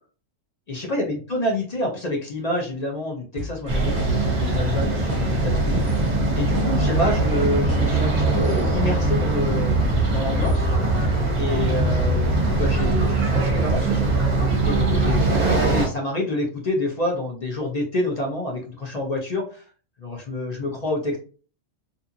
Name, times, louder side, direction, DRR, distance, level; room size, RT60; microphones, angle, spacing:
voice 1, 0.7-6.1 6.3-10.7 11.4-14.1 14.6-19.6 20.0-21.2, left 1 dB, 40° left, -1 dB, 0.6 m, -28 dB
sound 1, 3.4-8.5, equal, 10° right, 1.2 m, -36 dB
sound 2, 3.7-15.9, right 2 dB, 40° right, 0.8 m, -21 dB
2.7 x 2.5 x 2.6 m, 0.39 s
omnidirectional pair, 1.4 m